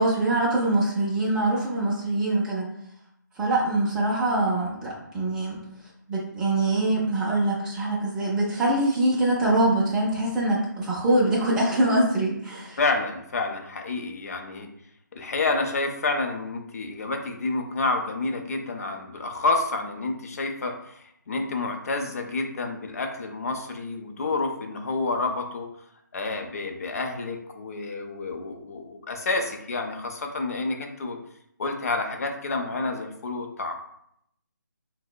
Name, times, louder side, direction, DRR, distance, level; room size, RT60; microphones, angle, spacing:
voice 1, 0.0-2.7 3.4-5.6 6.1-12.8, right 2 dB, 5° right, -7 dB, 0.4 m, -24 dB
voice 2, 12.8-14.7 15.1-25.7 26.1-31.2 31.6-33.7, left 3 dB, 50° left, 4 dB, 0.5 m, -29 dB
4.1 x 2.0 x 2.2 m, 0.73 s
figure-of-eight pair, 160°, 11 cm